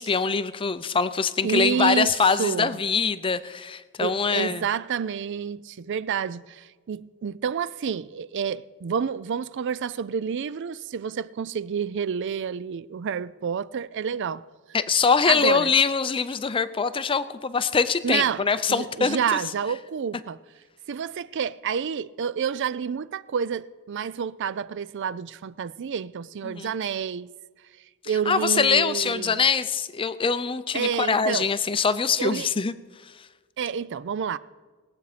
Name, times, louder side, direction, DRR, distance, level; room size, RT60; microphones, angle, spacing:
voice 1, 0.0-4.6 14.7-19.2 26.4-26.7 28.3-32.7, left 5 dB, 25° left, 0.5 m, -23 dB
voice 2, 1.4-2.8 4.0-14.4 15.3-15.7 18.0-20.4 20.9-27.3 28.1-29.5 30.7-31.5 32.2-32.5 33.6-34.4, right 7 dB, 55° right, 0.4 m, -29 dB
20.0 x 8.0 x 5.0 m
head